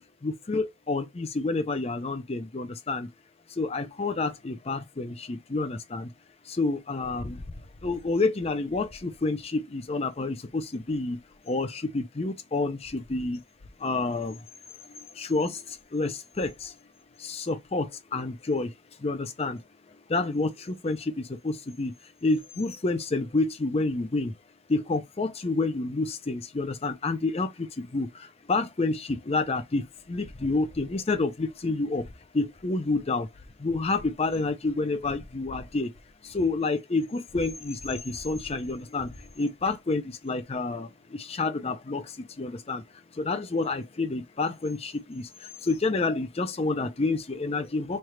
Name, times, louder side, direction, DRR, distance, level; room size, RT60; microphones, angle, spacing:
voice 1, 0.2-3.1 3.6-6.1 6.6-7.4 7.8-11.2 11.5-13.4 13.8-14.4 15.2-15.6 15.9-16.7 17.2-18.7 19.0-19.6 20.1-21.9 22.2-24.3 24.7-28.1 28.5-32.0 32.3-33.3 33.6-35.9 36.3-39.1 39.4-42.0 42.4-42.8 43.2-45.3 45.6-48.0, left 3 dB, 30° left, 0.5 m, -29 dB
3.2 x 2.4 x 4.3 m
head